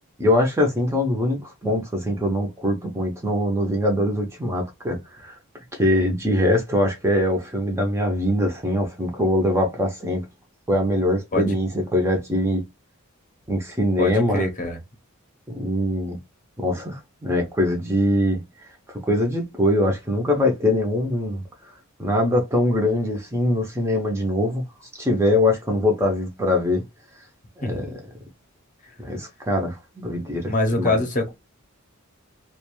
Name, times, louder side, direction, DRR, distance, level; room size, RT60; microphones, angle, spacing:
voice 1, 0.2-5.4 5.7-10.2 10.7-12.6 13.5-14.4 15.5-16.2 16.6-18.4 18.9-21.4 22.0-24.6 25.0-26.8 27.6-27.9 29.0-31.0, left 1 dB, 15° right, 0.5 m, -22 dB
voice 2, 14.0-14.8 27.6-27.9 30.5-31.3, left 2 dB, 35° left, 0.7 m, -24 dB
2.4 x 2.2 x 2.9 m
head